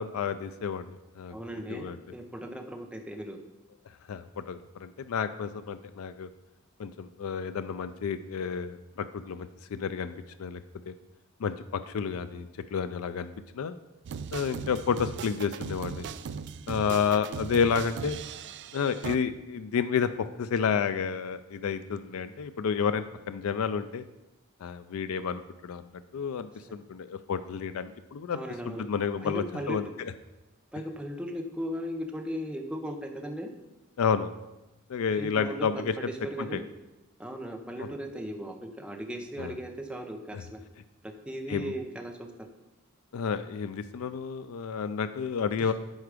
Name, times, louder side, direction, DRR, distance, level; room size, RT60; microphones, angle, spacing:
voice 1, 0.0-1.4 1.7-2.0 4.1-6.3 6.8-10.1 10.4-10.6 10.9-11.0 11.4-13.8 14.3-16.1 16.7-18.2 18.7-24.0 24.6-25.8 26.1-28.4 28.7-30.1 34.0-34.3 34.9-35.9 36.4-36.6 37.8-37.9 39.4-39.5 40.3-40.4 41.5-41.7 43.1-45.7, left 6 dB, 85° left, 11 dB, 0.4 m, -30 dB
voice 2, 1.3-3.4 28.3-28.8 29.2-29.8 30.7-33.5 35.1-36.7 37.2-40.6 41.0-42.5 45.6-45.7, equal, 5° right, 3 dB, 0.7 m, -37 dB
sound 1, 14.0-19.2, right 6 dB, 55° right, 0.3 m, -38 dB
8.1 x 4.8 x 4.9 m, 0.99 s
head